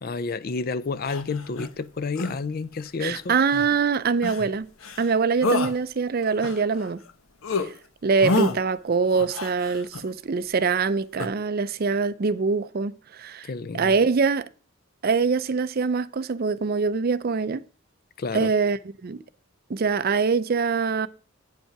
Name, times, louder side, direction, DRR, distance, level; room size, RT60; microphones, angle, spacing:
voice 1, 0.0-3.4 13.4-13.9 18.2-18.5, left 4 dB, 45° left, 0.4 m, -30 dB
sound 1, 1.1-1.7 2.2-2.4 3.5-3.7 4.2-4.5 4.8-5.1 5.4-5.7 6.2-7.1 7.4-7.7 8.2-8.6 9.1-10.1 11.2-11.3, left 2 dB, 85° left, 1.0 m, -28 dB
voice 2, 3.0-4.7 5.0-7.0 7.6-7.7 8.0-13.5 13.7-14.5 15.0-17.6 18.3-19.2 19.7-21.1, right 5 dB, 45° right, 0.5 m, -24 dB
8.9 x 5.4 x 5.8 m
head